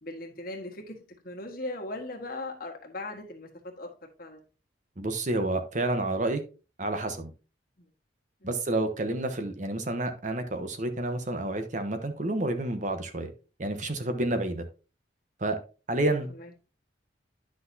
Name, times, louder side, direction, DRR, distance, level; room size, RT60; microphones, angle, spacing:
voice 1, 0.0-3.9 4.2-4.4 7.8-7.9 8.4-8.5 15.9-16.5, left 2 dB, 50° left, 1.5 m, -39 dB
voice 2, 5.0-6.4 6.8-7.3 8.4-13.3 13.6-14.6 15.4-15.6 15.9-16.3, right 2 dB, 40° right, 1.0 m, -29 dB
10.0 x 6.0 x 2.7 m
head